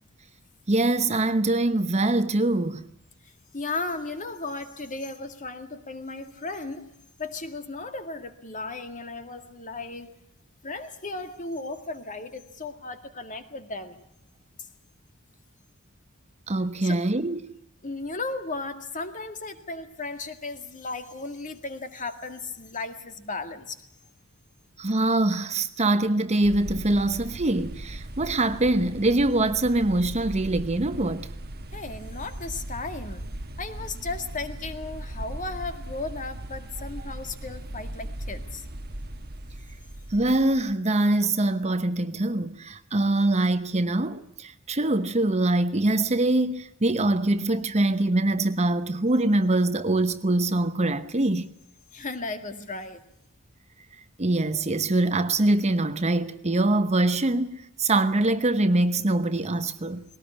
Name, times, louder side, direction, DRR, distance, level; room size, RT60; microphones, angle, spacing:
voice 1, 0.7-2.9 16.5-17.4 24.8-31.3 40.1-51.5 54.2-60.0, right 2 dB, 30° right, 0.9 m, -24 dB
voice 2, 3.2-6.9 7.2-10.1 10.6-14.0 16.8-17.0 17.8-23.8 31.7-33.2 33.6-38.7 51.9-53.0, left 3 dB, 40° left, 2.0 m, -35 dB
sound 1, 26.4-40.7, right 1 dB, 50° right, 1.3 m, -38 dB
20.0 x 18.0 x 9.9 m
head